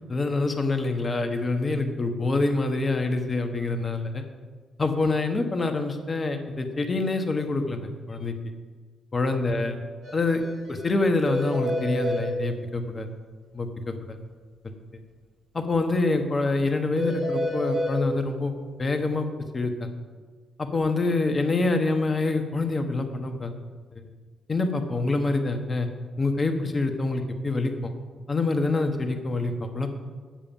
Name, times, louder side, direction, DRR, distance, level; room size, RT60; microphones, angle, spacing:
voice 1, 0.1-4.2 4.8-8.3 9.1-9.7 10.1-10.4 10.7-13.1 13.5-14.2 14.6-14.7 15.5-18.5 18.8-19.3 19.5-19.9 20.6-23.5 24.5-25.9 26.2-27.9 28.3-29.9, left 3 dB, 35° left, 6 dB, 1.4 m, -26 dB
sound 1, 10.0-10.1 10.4-10.5 10.8-10.9 11.3-12.2 17.0-17.9, equal, 55° right, 3.1 m, -28 dB
8.9 x 7.0 x 5.8 m, 1.5 s
hypercardioid pair, 40°, 0 cm